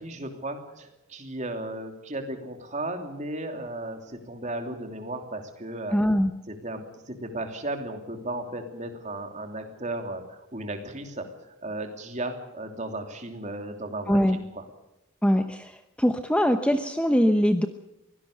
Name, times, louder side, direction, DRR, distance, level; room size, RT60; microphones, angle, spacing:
voice 1, 0.0-6.0 6.5-14.7, right 1 dB, 35° right, 5 dB, 2.9 m, -35 dB
voice 2, 5.9-6.3 14.1-14.4 15.2-15.7 16.0-17.7, equal, 5° left, 7 dB, 0.9 m, -22 dB
23.5 x 17.0 x 6.8 m, 0.94 s
head